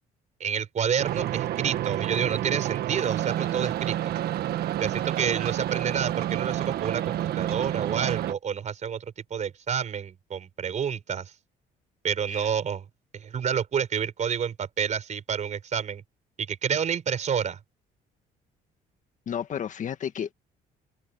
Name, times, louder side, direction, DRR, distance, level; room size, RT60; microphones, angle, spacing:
voice 1, 0.4-4.1 4.8-9.0 9.3-11.3 12.0-12.8 13.1-16.0 16.4-17.6, right 7 dB, 45° right, 4.6 m, -29 dB
sound 1, 1.0-8.3, right 12 dB, 70° right, 1.5 m, -29 dB
voice 2, 19.3-20.3, left 8 dB, 50° left, 1.6 m, -32 dB
open air
cardioid pair, 110°, 17 cm